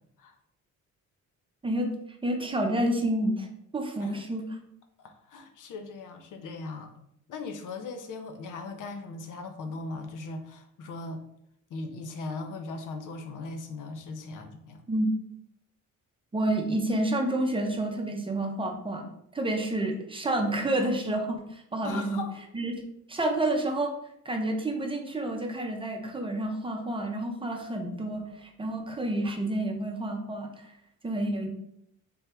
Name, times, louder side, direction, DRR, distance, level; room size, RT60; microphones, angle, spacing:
voice 1, 2.2-3.5 3.7-4.4 14.9-15.1 16.3-19.0 19.3-22.2 22.5-22.7 23.1-23.9 24.2-30.7 31.0-31.5, right 1 dB, 15° right, 2 dB, 0.6 m, -29 dB
voice 2, 5.0-6.9 7.3-11.2 11.7-14.8 21.8-22.4, left 3 dB, 80° left, 7 dB, 0.7 m, -39 dB
4.4 x 3.5 x 3.3 m, 0.73 s
cardioid pair, 150°, 31 cm